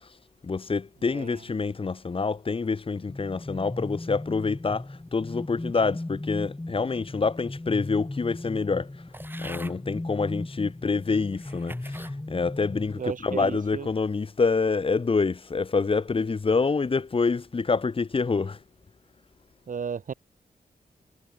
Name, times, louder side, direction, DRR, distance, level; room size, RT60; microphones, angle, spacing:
voice 1, 0.4-4.8 5.1-8.9 9.4-12.0 12.3-18.6, left 4 dB, 35° left, 1.1 m, -26 dB
voice 2, 1.0-1.4 13.0-13.9 19.7-20.1, right 6 dB, 55° right, 1.2 m, -34 dB
sound 1, 3.0-13.4, left 2 dB, 15° left, 2.3 m, -37 dB
sound 2, 9.1-9.8 10.6-10.7 11.3-12.2 12.7-13.1, right 1 dB, 15° right, 7.9 m, -44 dB
wide cardioid pair, 130°, 16 cm